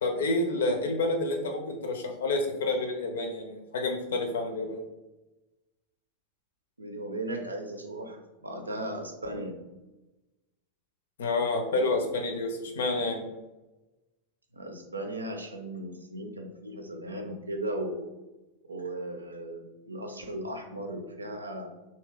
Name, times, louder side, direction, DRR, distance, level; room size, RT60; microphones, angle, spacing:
voice 1, 0.0-4.8 11.2-13.2, left 2 dB, 60° left, 3 dB, 0.6 m, -29 dB
voice 2, 6.8-9.6 14.5-18.1 18.6-21.7, right 1 dB, 80° right, 4 dB, 0.5 m, -36 dB
2.8 x 2.8 x 3.4 m, 1.1 s
figure-of-eight pair, 90°, 0 cm